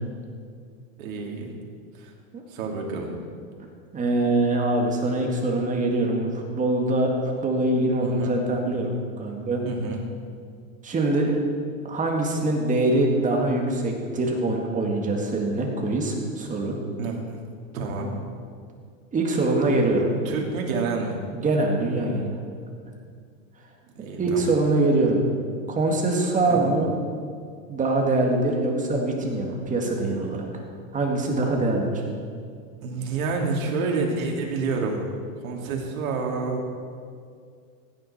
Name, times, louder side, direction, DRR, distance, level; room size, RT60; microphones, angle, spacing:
voice 1, 1.0-1.5 1.9-2.1 2.5-3.1 8.0-8.4 9.6-10.0 17.0-17.4 17.7-18.1 20.1-21.2 23.9-24.4 26.5-26.7 32.8-35.1 35.4-36.6, right 4 dB, 75° right, 0 dB, 2.7 m, -29 dB
voice 2, 3.9-9.6 10.8-11.4 11.8-16.7 19.1-20.1 21.3-22.4 24.2-25.2 25.7-26.9 27.7-30.6 30.9-32.0, right 2 dB, 20° right, 1 dB, 2.0 m, -23 dB
16.0 x 9.9 x 4.3 m, 2.2 s
supercardioid pair, 135°, 42 cm